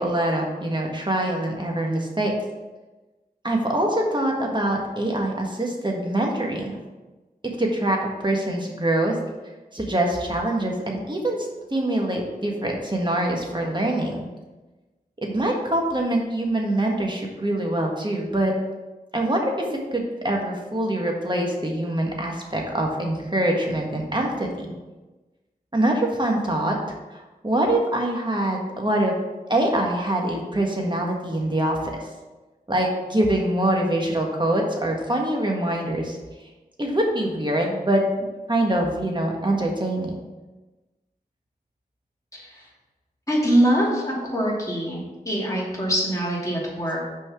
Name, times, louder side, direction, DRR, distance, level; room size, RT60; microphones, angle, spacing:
voice 1, 0.0-2.3 3.4-6.7 7.6-9.1 9.7-11.4 11.7-14.3 15.2-18.5 19.1-24.7 25.7-26.7 27.1-29.1 29.5-31.9 32.7-36.2 36.8-38.0 38.5-40.1, right 1 dB, 30° right, 0 dB, 1.6 m, -24 dB
voice 2, 42.3-42.7 43.3-47.1, equal, 20° left, -5 dB, 2.6 m, -24 dB
6.1 x 4.6 x 5.8 m, 1.2 s
wide cardioid pair, 55°, 16 cm